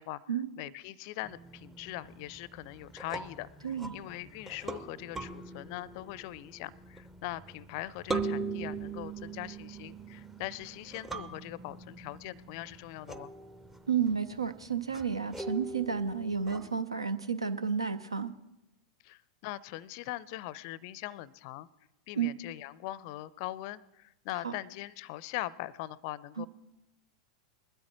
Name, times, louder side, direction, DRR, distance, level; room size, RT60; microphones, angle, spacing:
voice 1, 0.0-13.3 19.0-21.7 22.1-26.5, left 16 dB, 45° left, 22 dB, 0.4 m, -41 dB
sound 1, 1.2-16.8, right 3 dB, 10° right, 0.6 m, -42 dB
voice 2, 3.6-3.9 13.9-18.3 22.2-22.3 24.4-24.5 26.4-26.5, right 6 dB, 80° right, 14 dB, 0.5 m, -31 dB
20.5 x 12.5 x 3.0 m, 0.94 s
figure-of-eight pair, 90°, 3 cm